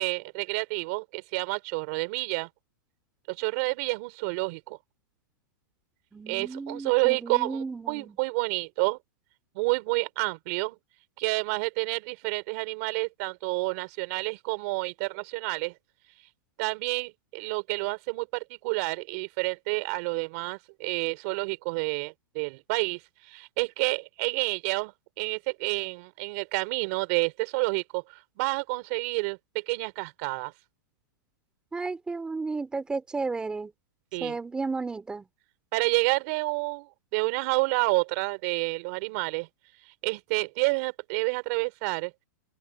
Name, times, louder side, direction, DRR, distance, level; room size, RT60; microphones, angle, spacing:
voice 1, 0.0-2.5 3.3-4.8 6.3-9.0 9.5-10.8 11.2-15.7 16.6-23.0 23.3-28.0 28.4-30.5 34.1-34.4 35.7-39.5 40.0-42.1, right 29 dB, 40° right, 4.0 m, -29 dB
voice 2, 6.1-8.1 31.7-33.7 34.2-35.2, right 4 dB, 5° right, 2.8 m, -33 dB
open air
hypercardioid pair, 155°, 12 cm